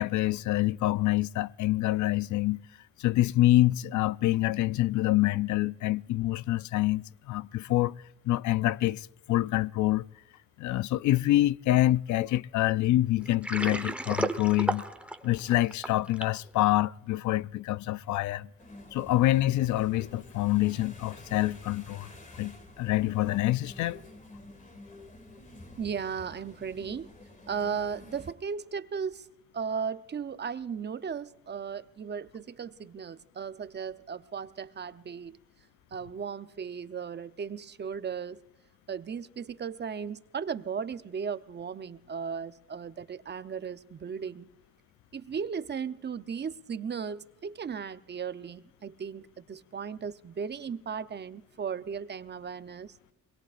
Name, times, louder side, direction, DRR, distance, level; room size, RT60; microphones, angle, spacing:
voice 1, 0.0-2.6 3.0-8.0 8.2-10.1 10.6-14.8 15.2-18.5 18.9-22.1 22.4-24.0, left 16 dB, 75° left, 0.5 m, -26 dB
Water, 13.2-16.4, right 1 dB, 5° right, 1.0 m, -32 dB
sound 1, 18.6-28.3, left 1 dB, 25° left, 2.3 m, -49 dB
voice 2, 25.8-27.1 27.5-29.3 29.5-35.4 35.9-38.4 38.9-44.5 45.1-53.0, right 6 dB, 35° right, 0.7 m, -36 dB
23.0 x 21.5 x 2.5 m
cardioid pair, 90°, 30 cm